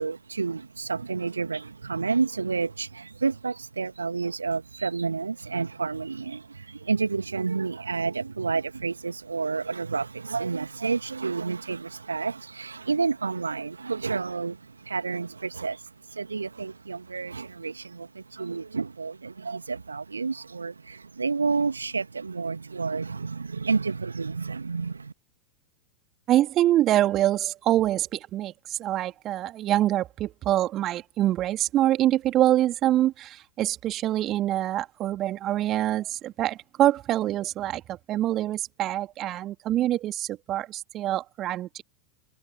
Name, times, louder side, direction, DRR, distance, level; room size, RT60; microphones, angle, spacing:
voice 1, 0.0-25.1, right 4 dB, 75° right, 1.6 m, -30 dB
voice 2, 26.3-41.8, right 13 dB, 35° right, 2.6 m, -25 dB
figure-of-eight pair, 90°, 0 cm